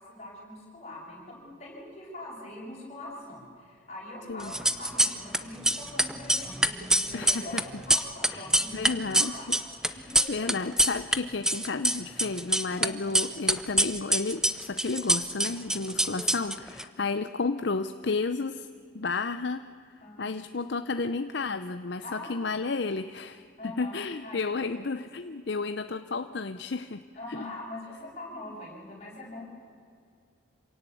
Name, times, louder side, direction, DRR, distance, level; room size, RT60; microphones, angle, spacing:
voice 1, 0.0-7.6 7.9-9.5 9.9-10.5 12.7-13.0 20.0-20.3 22.0-22.6 23.6-24.7 27.2-29.4, left 1 dB, 30° left, -3 dB, 6.9 m, -43 dB
sound 1, 4.4-5.4 5.6-11.2 11.4-12.9 13.1-16.8, right 1 dB, 5° right, 0.6 m, -25 dB
voice 2, 7.1-7.6 8.3-9.3 9.9-18.7 18.9-19.7 20.2-27.0 27.3-27.5, left 4 dB, 55° left, 10 dB, 0.6 m, -32 dB
26.5 x 17.5 x 8.5 m, 2.4 s
head